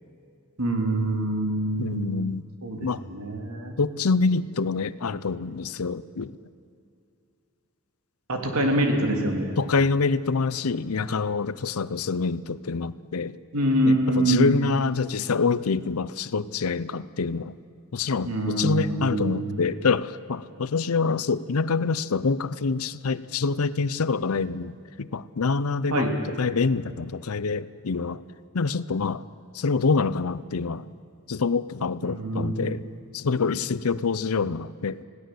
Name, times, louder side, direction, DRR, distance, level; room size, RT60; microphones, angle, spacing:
voice 1, 0.6-2.3 2.6-3.8 8.3-9.5 13.5-14.6 18.2-19.5 25.9-26.1 32.0-32.8, right 1 dB, 85° right, 2 dB, 3.2 m, -25 dB
voice 2, 1.8-2.5 2.8-3.0 3.8-6.3 9.6-13.4 13.9-17.6 17.9-26.1 26.4-28.2 28.5-29.2 29.5-30.9 31.3-32.9 33.1-35.0, left 4 dB, 80° left, 17 dB, 0.6 m, -26 dB
20.5 x 17.0 x 7.8 m, 2.4 s
head